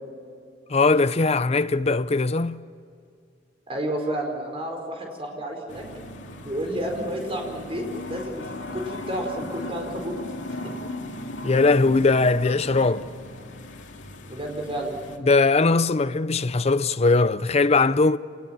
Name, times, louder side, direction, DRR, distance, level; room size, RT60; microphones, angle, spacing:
voice 1, 0.7-2.6 11.4-13.1 15.2-18.2, left 3 dB, 35° left, 0.6 m, -20 dB
voice 2, 3.7-5.8 6.4-10.1 14.2-14.9, right 1 dB, 30° right, 5.0 m, -31 dB
sound 1, 5.7-15.2, left 2 dB, 85° left, 2.4 m, -37 dB
27.5 x 20.0 x 8.9 m
head